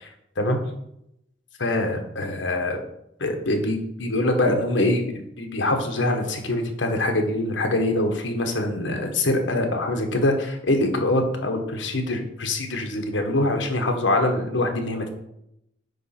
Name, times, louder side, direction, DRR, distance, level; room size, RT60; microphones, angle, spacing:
voice 1, 1.6-2.8 3.2-15.1, left 1 dB, 75° left, 4 dB, 1.3 m, -24 dB
9.1 x 3.2 x 5.9 m, 0.79 s
head